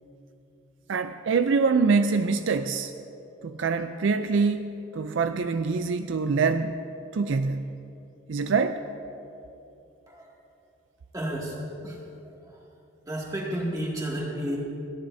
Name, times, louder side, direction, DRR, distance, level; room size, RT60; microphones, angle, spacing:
voice 1, 0.9-2.9 3.4-6.8 7.1-7.7 8.3-8.8, right 4 dB, 65° right, 9 dB, 0.4 m, -25 dB
voice 2, 11.1-12.6 13.1-14.6, equal, 15° right, -4 dB, 2.2 m, -32 dB
29.5 x 10.0 x 2.7 m, 2.8 s
head